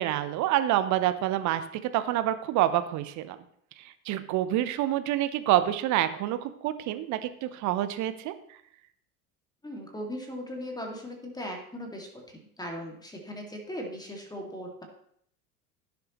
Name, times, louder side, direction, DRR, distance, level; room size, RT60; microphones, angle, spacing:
voice 1, 0.0-1.6 1.9-3.4 4.1-8.3, right 13 dB, 40° right, 11 dB, 0.9 m, -27 dB
voice 2, 9.6-14.8, equal, 10° left, 1 dB, 2.2 m, -38 dB
15.5 x 7.0 x 3.1 m, 0.68 s
figure-of-eight pair, 70°, 44 cm